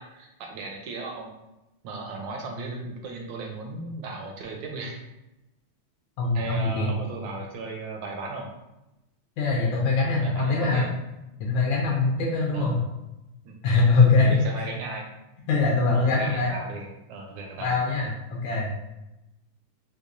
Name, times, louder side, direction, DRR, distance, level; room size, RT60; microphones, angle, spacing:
voice 1, 0.0-1.3 1.8-5.0 6.3-8.5 10.2-10.9 12.5-12.8 13.4-13.5 14.2-15.0 15.9-17.7, right 3 dB, 75° right, 1 dB, 1.1 m, -36 dB
voice 2, 6.2-6.9 9.4-10.8 11.4-12.8 13.6-14.7 15.5-16.5 17.6-18.7, left 3 dB, 75° left, -3 dB, 1.3 m, -22 dB
4.6 x 2.2 x 2.5 m, 0.94 s
omnidirectional pair, 2.4 m